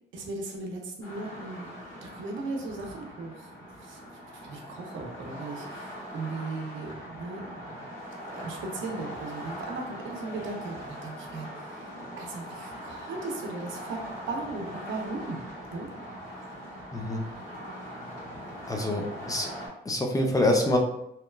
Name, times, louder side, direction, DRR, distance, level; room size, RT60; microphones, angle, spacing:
voice 1, 0.1-1.7 2.0-3.5 3.8-4.0 4.4-7.9 8.3-15.4 15.7-15.9, right 3 dB, 80° right, 1 dB, 0.6 m, -37 dB
sound 1, 1.0-19.7, equal, 85° left, 1.4 m, -41 dB
voice 2, 16.9-17.2 18.7-19.5 19.9-20.8, left 1 dB, 15° left, 2 dB, 0.4 m, -26 dB
2.9 x 2.1 x 2.2 m, 0.79 s
cardioid pair, 90°, 20 cm